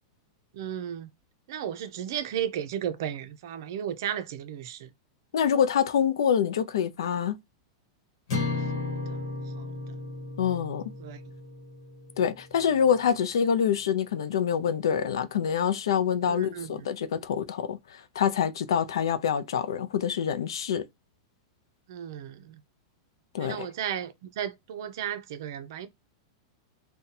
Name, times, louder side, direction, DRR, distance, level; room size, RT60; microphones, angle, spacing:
voice 1, 0.5-1.1 1.5-4.9 8.7-9.2 9.5-9.7 11.0-11.2 16.3-16.9 21.9-22.6 23.4-25.9, right 10 dB, 55° right, 0.5 m, -34 dB
voice 2, 5.3-7.4 10.4-10.9 12.2-20.9 23.3-23.7, left 8 dB, 85° left, 0.5 m, -26 dB
sound 1, 8.3-12.6, left 3 dB, 50° left, 1.1 m, -34 dB
2.7 x 2.2 x 4.0 m
supercardioid pair, 170°, 2 cm